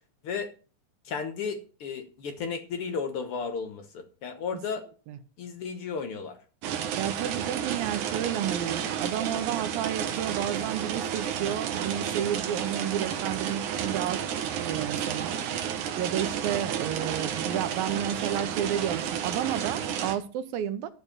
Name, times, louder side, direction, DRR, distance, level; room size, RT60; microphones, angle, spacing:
voice 1, 1.0-4.8 5.4-6.4, left 5 dB, 80° left, 7 dB, 1.2 m, -34 dB
sound 1, 6.6-20.2, right 8 dB, 65° right, 2.3 m, -31 dB
voice 2, 7.0-14.3 14.6-15.4 16.0-20.9, right 10 dB, 85° right, 11 dB, 2.6 m, -31 dB
12.0 x 4.6 x 8.5 m, 0.36 s
omnidirectional pair, 4.2 m